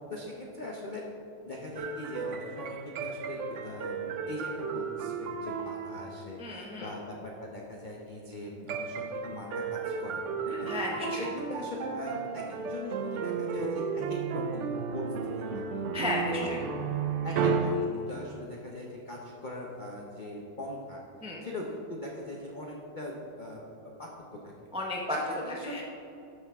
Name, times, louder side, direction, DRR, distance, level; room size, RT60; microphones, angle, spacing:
voice 1, 0.1-1.0 1.4-10.7 11.1-15.1 15.5-15.8 16.4-16.5 17.2-21.0 21.4-23.6 24.0-24.7 25.1-25.8, left 1 dB, 40° left, -2 dB, 0.7 m, -41 dB
sound 1, 1.8-6.3 8.7-17.9, right 5 dB, 75° right, 0.6 m, -33 dB
voice 2, 6.4-6.9 10.7-11.3 15.9-16.6 21.2-21.4 24.7-25.2 25.6-25.8, left 2 dB, 5° right, -2 dB, 0.4 m, -33 dB
13.0 x 6.6 x 3.6 m, 2.9 s
omnidirectional pair, 2.0 m